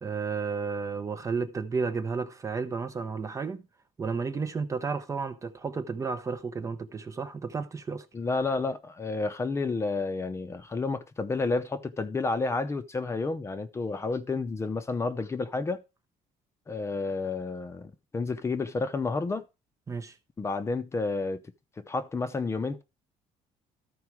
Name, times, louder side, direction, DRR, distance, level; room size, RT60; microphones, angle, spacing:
voice 1, 0.0-3.6 4.0-8.1 19.9-20.2, right 5 dB, 25° right, 0.7 m, -32 dB
voice 2, 8.1-15.8 16.7-19.4 20.4-21.4 21.8-22.8, left 3 dB, 20° left, 0.7 m, -30 dB
13.5 x 4.7 x 4.6 m
cardioid pair, 140°, 14 cm